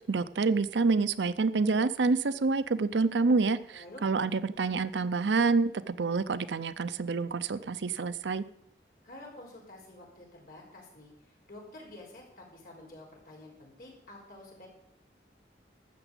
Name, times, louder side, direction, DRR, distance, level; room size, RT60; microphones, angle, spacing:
voice 1, 0.1-8.4, right 4 dB, 85° right, 15 dB, 0.6 m, -27 dB
voice 2, 3.7-4.1 9.0-14.7, left 1 dB, 50° left, -1 dB, 4.7 m, -49 dB
13.0 x 7.1 x 8.2 m, 0.78 s
head